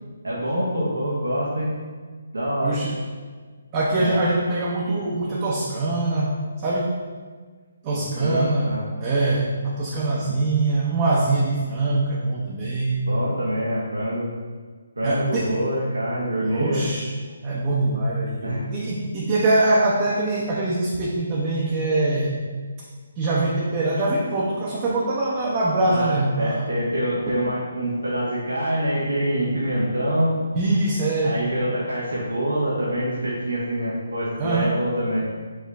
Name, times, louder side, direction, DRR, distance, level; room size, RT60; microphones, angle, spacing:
voice 1, 0.2-1.7 2.3-2.8 4.0-4.2 7.9-8.8 13.0-14.3 15.0-16.9 18.4-18.6 25.8-30.4 31.2-35.2, equal, 85° right, -6 dB, 0.9 m, -25 dB
voice 2, 2.6-2.9 3.7-7.0 7.8-8.7 9.0-13.0 15.0-15.5 16.4-17.1 17.4-22.4 23.2-26.7 27.2-27.5 30.5-31.4 34.4-34.8, right 2 dB, 30° right, -5 dB, 0.6 m, -23 dB
4.6 x 3.0 x 3.4 m, 1.5 s
figure-of-eight pair, 145°, 0 cm